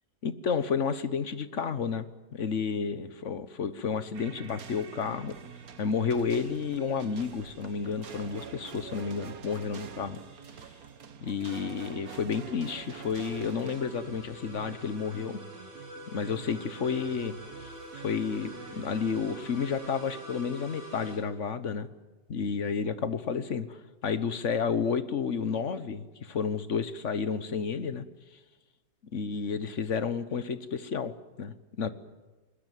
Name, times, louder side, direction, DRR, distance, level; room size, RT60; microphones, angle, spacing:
voice 1, 0.2-2.0 2.3-5.3 5.8-10.2 11.2-15.4 16.1-17.3 17.9-21.9 22.3-23.8 24.0-28.0 29.1-31.9, left 6 dB, 45° left, 13 dB, 1.3 m, -31 dB
sound 1, 4.1-19.9, right 6 dB, 55° right, 1.6 m, -46 dB
sound 2, 12.2-21.2, right 1 dB, 40° right, 7.8 m, -47 dB
21.0 x 20.0 x 9.3 m, 1.2 s
omnidirectional pair, 1.9 m